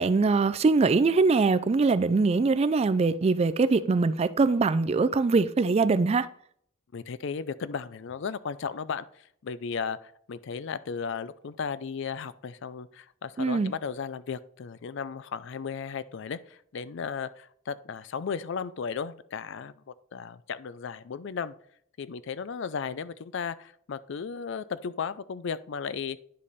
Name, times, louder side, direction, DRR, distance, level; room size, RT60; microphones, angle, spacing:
voice 1, 0.0-6.3 13.4-13.7, right 4 dB, 30° right, 0.3 m, -23 dB
voice 2, 6.9-19.7 20.1-21.5 22.0-26.2, left 6 dB, 60° left, 0.4 m, -35 dB
10.0 x 5.2 x 4.1 m
head